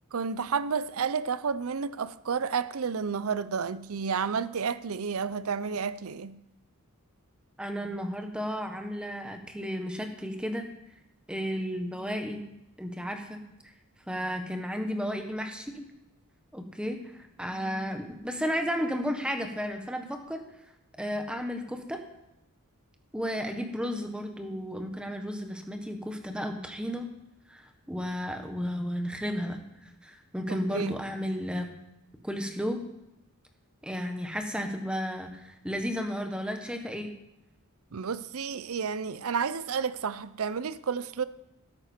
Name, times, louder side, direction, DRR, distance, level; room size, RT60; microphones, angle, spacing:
voice 1, 0.1-6.3 30.5-30.9 37.9-41.2, right 6 dB, 70° right, 0.6 m, -31 dB
voice 2, 7.6-10.7 11.3-12.4 12.8-13.4 14.1-15.8 16.5-20.4 21.0-22.0 23.1-27.1 27.5-31.7 32.2-32.8 33.8-37.1, equal, 5° right, 1.2 m, -33 dB
13.0 x 11.0 x 4.4 m
head